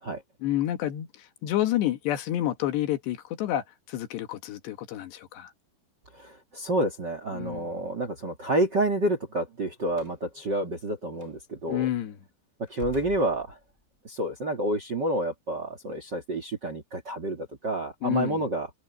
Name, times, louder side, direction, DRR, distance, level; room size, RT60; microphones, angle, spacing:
voice 1, 0.4-5.5 7.3-7.8 11.7-12.2 18.0-18.4, left 13 dB, 75° left, 3.7 m, -29 dB
voice 2, 6.1-11.9 12.7-13.6 14.0-18.7, right 1 dB, 35° right, 1.9 m, -29 dB
Slam, 9.9-10.2 11.1-11.3 12.7-14.0, left 2 dB, 15° left, 3.6 m, -47 dB
omnidirectional pair, 5.0 m